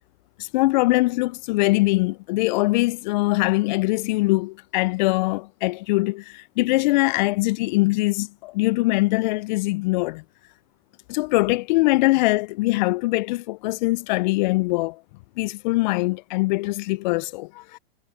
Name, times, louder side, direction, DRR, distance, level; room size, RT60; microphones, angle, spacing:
voice 1, 0.4-10.2 11.1-15.0 15.4-17.8, left 22 dB, 50° left, 0.6 m, -22 dB
hypercardioid pair, 110°, 29 cm